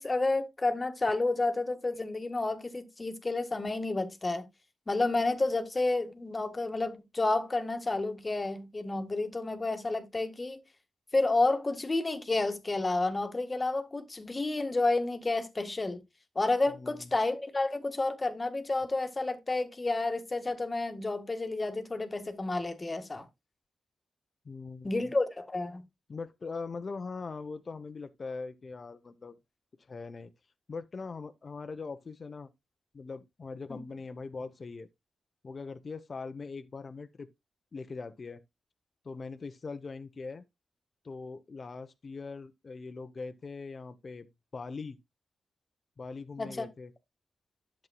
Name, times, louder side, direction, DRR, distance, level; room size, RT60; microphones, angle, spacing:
voice 1, 0.0-4.5 4.9-10.6 11.1-16.0 16.3-23.2 24.8-25.8 33.7-33.8 46.4-46.7, left 2 dB, 35° left, 1.7 m, -30 dB
voice 2, 16.7-17.1 24.4-25.1 26.1-29.4 29.9-30.3 30.7-32.5 32.9-34.9 35.4-37.3 37.7-38.4 39.0-40.4 41.0-45.0 46.0-46.9, left 4 dB, 50° left, 0.9 m, -41 dB
11.0 x 7.6 x 2.3 m
cardioid pair, 55°, 0 cm